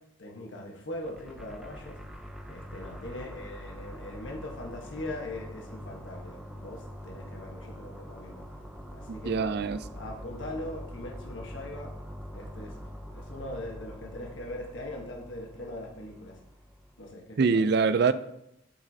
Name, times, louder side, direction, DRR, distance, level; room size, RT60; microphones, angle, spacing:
voice 1, 0.2-8.4 8.9-9.6 9.9-11.9 12.3-12.8 13.1-16.4 17.0-17.7, left 1 dB, 65° left, 0 dB, 1.2 m, -41 dB
sound 1, 0.9-17.1, equal, ahead, 0.6 m, -44 dB
voice 2, 9.1-9.8 17.4-18.1, right 5 dB, 55° right, 14 dB, 0.4 m, -24 dB
8.2 x 6.1 x 2.7 m, 0.81 s
head